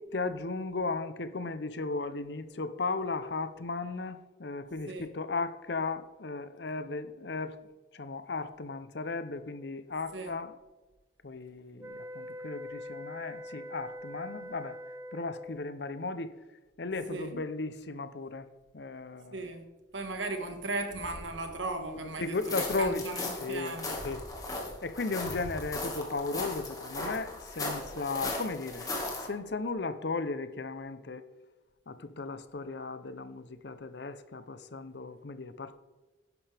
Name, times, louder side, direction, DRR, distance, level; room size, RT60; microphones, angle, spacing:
voice 1, 0.0-7.6 7.9-10.6 11.2-14.8 15.1-16.3 16.8-18.5 18.7-19.5 22.2-23.1 23.4-23.7 24.0-24.2 24.8-31.2 31.9-35.8, left 3 dB, 65° left, 0.7 m, -36 dB
sound 1, 11.8-15.7, left 1 dB, 15° right, 0.5 m, -43 dB
voice 2, 17.1-17.4 19.3-19.6 19.9-24.0, right 2 dB, 85° right, 1.7 m, -37 dB
sound 2, 20.9-23.3 23.9-26.9 27.4-27.9, equal, 35° right, 4.0 m, -49 dB
sound 3, 22.3-29.3, left 2 dB, 20° left, 1.9 m, -37 dB
11.0 x 10.5 x 3.5 m
head